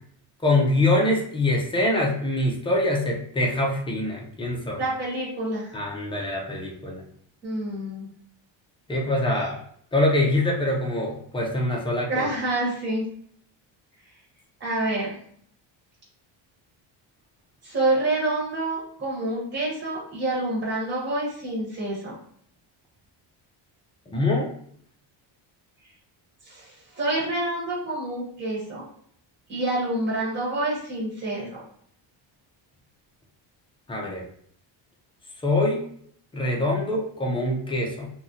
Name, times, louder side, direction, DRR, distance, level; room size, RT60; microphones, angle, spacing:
voice 1, 0.4-4.8 5.7-7.0 8.9-9.5 9.9-12.3 24.1-24.5 33.9-34.2 35.4-35.8 36.3-38.1, left 1 dB, 15° left, -1 dB, 0.3 m, -24 dB
voice 2, 4.8-5.8 7.4-8.1 9.4-9.5 12.1-13.0 14.6-15.2 17.6-22.1 26.5-28.8 29.5-31.6, right 2 dB, 25° right, -6 dB, 1.1 m, -27 dB
2.7 x 2.1 x 3.6 m, 0.64 s
cardioid pair, 165°, 47 cm